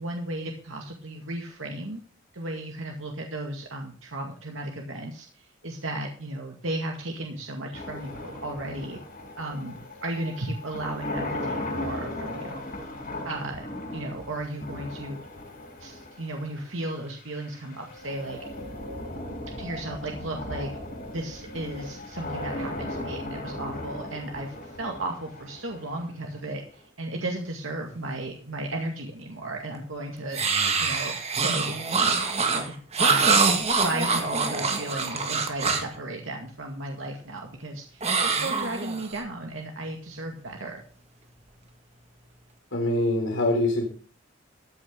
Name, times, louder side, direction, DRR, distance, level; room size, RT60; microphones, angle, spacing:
voice 1, 0.0-2.0 2.3-9.0 9.4-12.7 13.2-13.7 13.9-15.2 15.8-18.4 19.6-20.7 21.0-30.4 30.8-31.8 32.5-40.8, right 2 dB, 80° right, 1 dB, 2.1 m, -35 dB
sound 1, 7.7-26.8, left 1 dB, 45° left, 7.1 m, -37 dB
sound 2, 30.3-36.0 38.0-39.2, right 4 dB, 30° right, 1.9 m, -24 dB
voice 2, 42.7-43.9, left 1 dB, 80° left, 1 dB, 3.4 m, -24 dB
14.5 x 8.9 x 3.9 m, 0.43 s
head